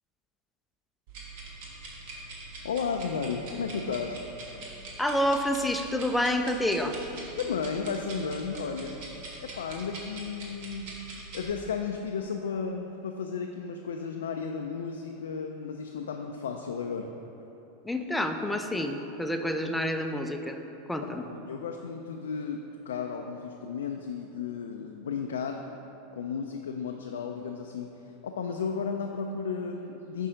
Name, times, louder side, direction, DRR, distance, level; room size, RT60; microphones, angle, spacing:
sound 1, 1.1-11.5, right 2 dB, 60° right, 1.2 m, -44 dB
voice 1, 2.6-4.3 7.4-9.0 9.4-10.9 11.3-17.1 21.0-25.6 26.1-27.9 28.2-30.3, left 5 dB, 75° left, 3 dB, 0.3 m, -34 dB
voice 2, 5.0-7.0 17.8-20.6 20.9-21.3, left 1 dB, 5° left, 5 dB, 0.5 m, -28 dB
5.6 x 5.4 x 3.8 m, 3.0 s
hypercardioid pair, 90°, 0 cm